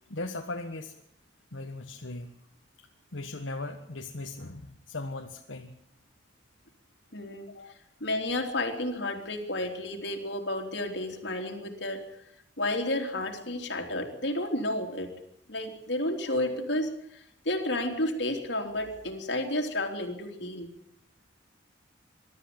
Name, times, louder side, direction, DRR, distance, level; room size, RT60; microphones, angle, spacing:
voice 1, 0.1-1.0 1.5-2.4 2.8-5.8 7.5-7.7, left 2 dB, 75° left, 3 dB, 1.4 m, -38 dB
voice 2, 7.1-7.5 8.0-12.0 12.6-15.1 15.5-20.7, left 1 dB, 60° left, 3 dB, 3.4 m, -31 dB
22.5 x 13.0 x 8.8 m, 0.75 s
head